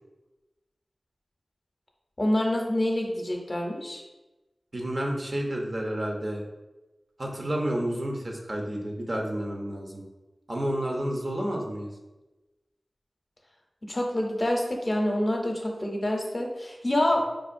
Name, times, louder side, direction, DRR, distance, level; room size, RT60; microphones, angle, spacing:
voice 1, 2.2-4.0 13.8-17.2, left 1 dB, 40° left, 1 dB, 0.7 m, -27 dB
voice 2, 4.7-6.5 7.2-10.0 10.5-11.9, right 1 dB, 50° right, 0 dB, 0.7 m, -30 dB
4.7 x 2.4 x 2.5 m, 1.1 s
cardioid pair, 45°, 0 cm